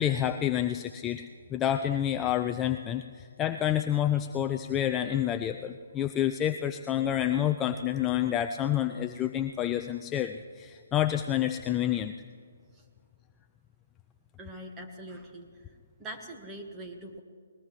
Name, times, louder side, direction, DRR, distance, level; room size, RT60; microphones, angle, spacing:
voice 1, 0.0-12.1, left 11 dB, 15° left, 7 dB, 0.4 m, -28 dB
voice 2, 14.4-15.5 16.0-17.2, right 1 dB, 15° right, 2 dB, 1.6 m, -42 dB
20.5 x 19.5 x 3.2 m, 2.1 s
hypercardioid pair, 160°, 0 cm